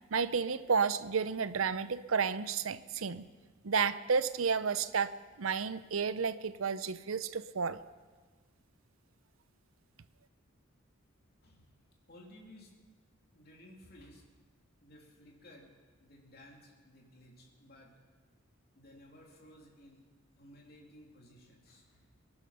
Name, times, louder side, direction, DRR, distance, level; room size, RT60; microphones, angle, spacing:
voice 1, 0.1-3.3 3.6-7.8, right 5 dB, 80° right, 14 dB, 0.7 m, -31 dB
voice 2, 11.4-11.8 12.1-12.8 13.3-14.2 14.8-18.0 18.7-20.1 20.3-22.1, left 1 dB, 50° left, 0 dB, 3.1 m, -57 dB
22.5 x 11.0 x 5.8 m, 1.4 s
head